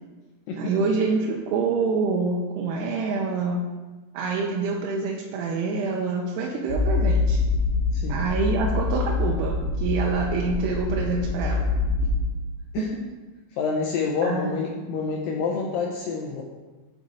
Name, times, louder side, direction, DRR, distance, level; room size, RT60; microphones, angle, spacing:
voice 1, 0.6-3.6 4.1-7.4 8.1-11.7 12.8-12.9 14.2-14.6, right 4 dB, 85° right, -1 dB, 2.7 m, -26 dB
sound 1, 6.7-12.2, left 3 dB, 60° left, 2.4 m, -25 dB
voice 2, 7.9-8.4 12.7-12.9 13.5-16.4, left 5 dB, 80° left, -1 dB, 2.0 m, -28 dB
8.2 x 4.9 x 4.1 m, 1.2 s
omnidirectional pair, 4.9 m